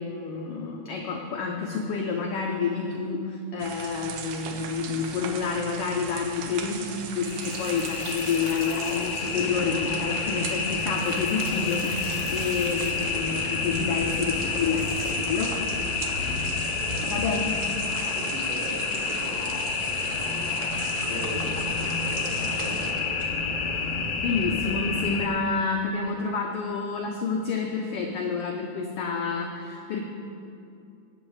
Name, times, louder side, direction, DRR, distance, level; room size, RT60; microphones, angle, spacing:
voice 1, 0.0-15.6 17.1-17.6 24.2-30.0, left 5 dB, 90° left, 2 dB, 1.3 m, -29 dB
sound 1, 3.6-22.9, right 7 dB, 75° right, 2.1 m, -38 dB
sound 2, 7.2-25.3, left 5 dB, 75° left, 1.4 m, -29 dB
sound 3, 9.2-23.2, right 2 dB, 25° right, 1.5 m, -46 dB
voice 2, 18.1-20.1 21.0-23.3, right 1 dB, 60° right, -1 dB, 2.0 m, -39 dB
19.0 x 7.9 x 3.2 m, 2.6 s
omnidirectional pair, 3.5 m